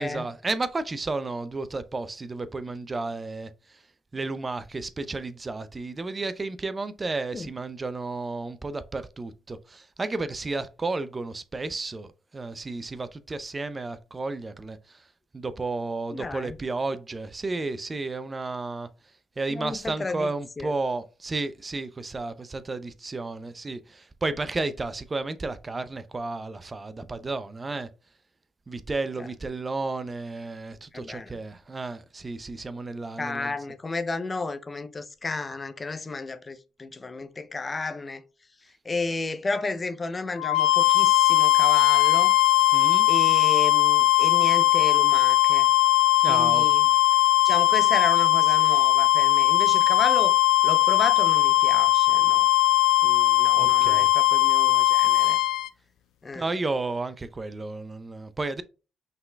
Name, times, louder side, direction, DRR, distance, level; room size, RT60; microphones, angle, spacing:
voice 1, 0.0-3.5 4.1-12.1 12.3-15.0 15.3-18.9 19.4-27.9 28.7-33.5 42.7-43.1 46.2-46.7 53.6-54.1 56.3-58.6, right 3 dB, 30° right, 0.5 m, -32 dB
voice 2, 16.1-16.6 19.5-20.7 29.2-29.3 30.9-31.3 33.2-38.2 38.8-42.3 43.1-45.7 46.3-46.9 47.4-52.5 53.0-55.4 56.2-56.5, left 3 dB, 30° left, 0.6 m, -33 dB
sound 1, 40.4-55.7, left 16 dB, 80° left, 0.3 m, -19 dB
5.6 x 3.7 x 2.2 m
supercardioid pair, 65°, 0 cm